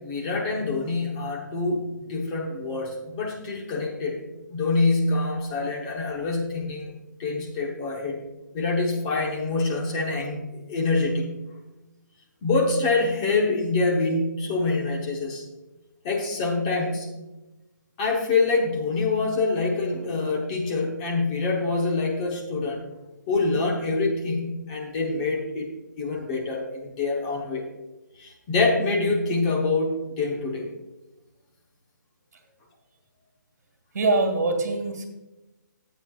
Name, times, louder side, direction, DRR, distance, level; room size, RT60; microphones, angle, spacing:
voice 1, 0.0-6.9 7.2-8.2 8.5-11.3 12.4-15.4 16.0-17.1 18.0-22.9 23.3-25.7 26.0-27.7 28.2-30.7, left 3 dB, 20° left, 0 dB, 1.0 m, -25 dB
voice 2, 33.9-35.1, right 3 dB, 60° right, 4 dB, 2.0 m, -23 dB
14.0 x 8.0 x 2.4 m, 1.0 s
hypercardioid pair, 165°, 10 cm